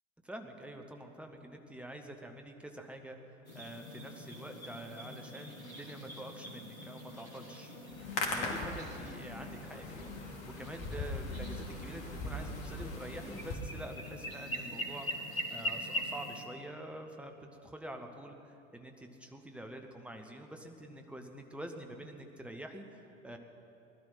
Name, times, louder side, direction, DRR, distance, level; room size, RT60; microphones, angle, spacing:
voice 1, 0.2-17.3 17.6-23.4, right 1 dB, 5° right, 4 dB, 1.3 m, -47 dB
sound 1, 3.4-16.5, equal, 85° left, 2.3 m, -43 dB
Hands, 7.9-13.5, left 3 dB, 45° left, 2.7 m, -40 dB
20.0 x 12.0 x 5.8 m, 2.8 s
figure-of-eight pair, 85°, 40 cm